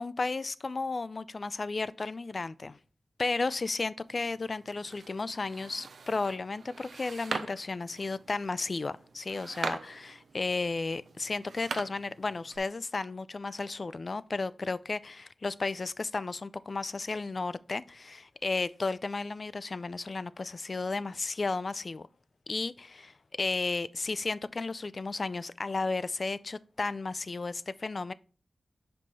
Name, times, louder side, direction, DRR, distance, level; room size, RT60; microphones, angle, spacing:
voice 1, 0.0-2.8 3.2-22.1 22.5-28.1, left 3 dB, 55° left, 0.3 m, -33 dB
sound 1, 4.1-12.6, right 4 dB, 85° right, 0.5 m, -42 dB
5.5 x 5.2 x 4.1 m
wide cardioid pair, 65°, 0 cm